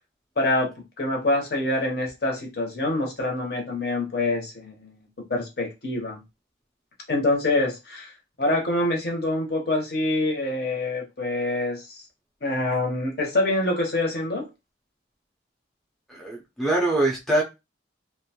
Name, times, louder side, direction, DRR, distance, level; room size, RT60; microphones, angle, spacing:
voice 1, 0.4-5.0 5.3-6.2 7.1-8.1 8.4-12.0 12.4-14.5, left 2 dB, 55° left, 0.8 m, -25 dB
voice 2, 16.1-17.4, right 2 dB, ahead, 0.4 m, -23 dB
2.5 x 2.1 x 2.8 m
head